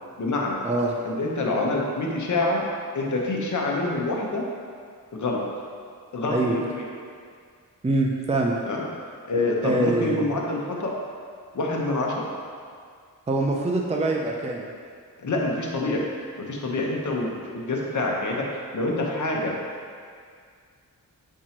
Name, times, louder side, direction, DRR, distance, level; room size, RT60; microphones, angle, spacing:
voice 1, 0.2-0.6 1.0-2.6 2.9-4.4 5.1-5.4 6.1-6.9 8.6-8.8 9.3-10.9 11.5-12.3 15.2-16.0 16.4-18.5 18.7-19.5, left 2 dB, 55° left, -2 dB, 1.1 m, -26 dB
voice 2, 7.8-8.6 9.6-10.3 13.3-14.7, right 2 dB, 20° right, 0 dB, 0.5 m, -24 dB
7.2 x 4.6 x 2.9 m, 2.1 s
cardioid pair, 65°, 35 cm